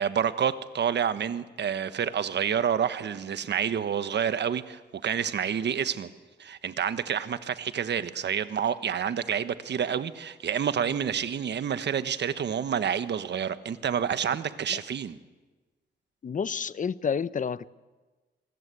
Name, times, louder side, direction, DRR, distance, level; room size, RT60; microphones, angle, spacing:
voice 1, 0.0-6.1 6.4-15.2, right 8 dB, 70° right, 12 dB, 1.3 m, -28 dB
voice 2, 16.2-17.7, left 6 dB, 45° left, 17 dB, 0.8 m, -30 dB
27.5 x 20.5 x 8.3 m, 1.3 s
cardioid pair, 90°, 18 cm